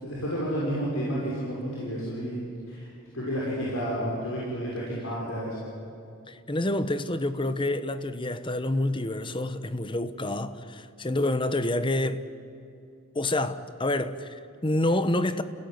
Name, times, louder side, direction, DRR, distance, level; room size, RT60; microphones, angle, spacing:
voice 1, 0.0-2.4 2.7-2.9 3.1-5.6, equal, 80° left, 6.3 m, -31 dB
voice 2, 6.3-12.3 13.1-15.4, left 1 dB, 25° left, 1.0 m, -28 dB
29.0 x 17.5 x 9.7 m
head